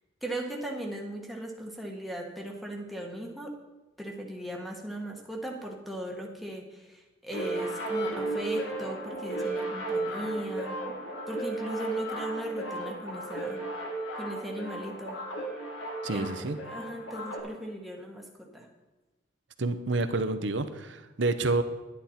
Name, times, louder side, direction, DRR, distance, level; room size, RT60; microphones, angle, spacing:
voice 1, 0.2-3.5 4.0-10.8 11.3-13.6 14.2-15.2 16.1-18.7, right 1 dB, ahead, -1 dB, 1.4 m, -38 dB
sound 1, 7.3-17.4, right 2 dB, 65° left, 2.3 m, -34 dB
voice 2, 16.0-16.6 19.6-21.6, right 2 dB, 65° right, 10 dB, 0.8 m, -28 dB
11.0 x 10.5 x 4.3 m, 1.2 s
head